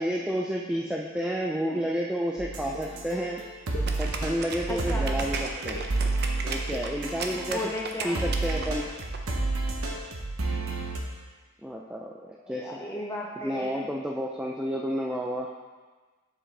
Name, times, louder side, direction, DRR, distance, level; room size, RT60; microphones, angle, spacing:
voice 1, 0.0-3.4 4.0-5.8 6.4-7.7 8.0-8.9 11.6-12.7 13.4-15.5, equal, 5° right, -2 dB, 0.4 m, -30 dB
sound 1, 2.4-7.9 8.1-11.0, right 2 dB, 90° right, 1.0 m, -30 dB
sound 2, 2.7-2.8 3.7-3.9 4.5-4.8 5.5-5.9 6.5-6.8 7.5-7.7, left 2 dB, 45° left, 0.8 m, -38 dB
sound 3, 3.8-9.2, right 5 dB, 50° right, 0.6 m, -36 dB
voice 2, 4.7-5.1 7.3-8.2 12.4-13.7, left 1 dB, 15° left, -3 dB, 1.1 m, -35 dB
7.4 x 7.3 x 3.3 m, 1.3 s
head